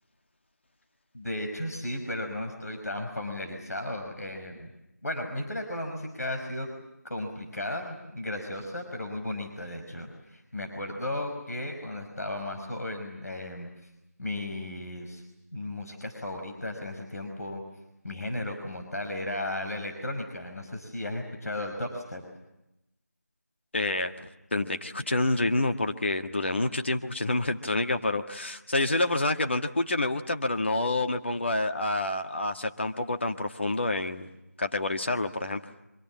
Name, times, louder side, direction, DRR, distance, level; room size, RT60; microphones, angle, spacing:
voice 1, 1.1-4.7 5.0-6.7 7.0-13.7 14.2-15.2 15.5-17.6 18.0-22.2, left 1 dB, 65° left, 3 dB, 5.4 m, -35 dB
voice 2, 23.7-34.3 34.6-35.6, left 2 dB, 40° left, 6 dB, 1.6 m, -28 dB
28.5 x 26.0 x 7.4 m, 0.91 s
figure-of-eight pair, 175°, 9 cm